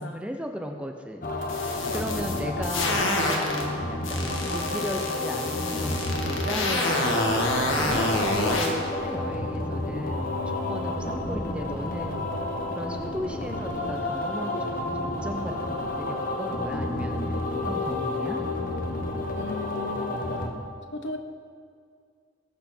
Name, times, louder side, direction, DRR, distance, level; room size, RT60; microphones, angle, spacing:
voice 1, 0.0-7.2 7.6-8.1 8.5-10.3 10.7-12.3 12.7-17.4 17.6-18.4, equal, 5° right, 4 dB, 0.6 m, -36 dB
sound 1, 1.2-20.5, left 2 dB, 45° left, 1.2 m, -30 dB
sound 2, 1.4-3.6 4.0-8.7, left 2 dB, 85° left, 1.9 m, -27 dB
voice 2, 1.9-2.4 19.3-20.2 20.9-21.2, left 2 dB, 65° left, 6 dB, 1.0 m, -36 dB
20.0 x 7.7 x 4.4 m, 2.1 s
head